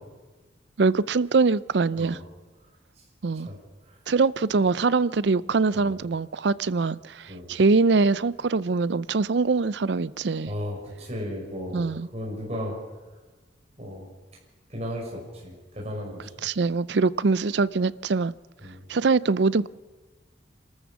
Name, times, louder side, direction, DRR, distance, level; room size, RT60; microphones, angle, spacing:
voice 1, 0.8-2.2 3.2-3.5 4.1-10.5 11.7-12.1 16.4-18.3 18.9-19.7, right 4 dB, 70° right, 19 dB, 0.5 m, -23 dB
voice 2, 10.5-11.8 12.1-12.8 13.8-14.1 14.7-16.2 18.6-18.8, equal, 35° right, -3 dB, 5.9 m, -34 dB
27.0 x 13.5 x 7.2 m, 1.3 s
head